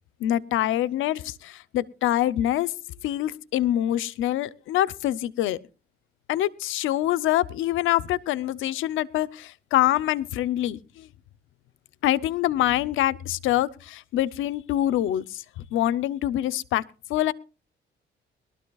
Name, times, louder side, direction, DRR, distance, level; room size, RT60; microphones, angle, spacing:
voice 1, 0.2-2.7 3.0-5.6 6.3-11.1 12.0-15.4 15.7-16.8 17.1-17.3, left 13 dB, 85° left, 18 dB, 0.6 m, -25 dB
21.5 x 12.5 x 2.3 m, 0.33 s
cardioid pair, 90°, 20 cm